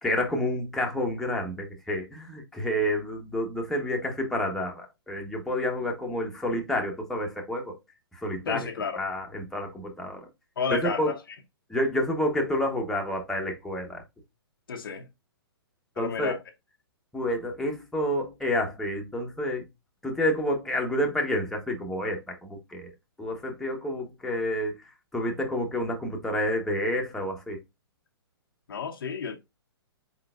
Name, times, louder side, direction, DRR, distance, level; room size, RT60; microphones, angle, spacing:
voice 1, 0.0-7.7 8.2-8.6 9.0-10.2 10.7-11.1 11.7-14.0 16.0-16.3 17.1-19.6 20.0-22.9 23.2-24.7 25.1-27.6, left 1 dB, 5° left, 0.9 m, -29 dB
voice 2, 8.5-9.0 10.6-11.2 14.7-15.1 16.0-16.4 28.7-29.4, left 6 dB, 60° left, 0.7 m, -31 dB
4.6 x 3.9 x 2.3 m
figure-of-eight pair, 120°, 13 cm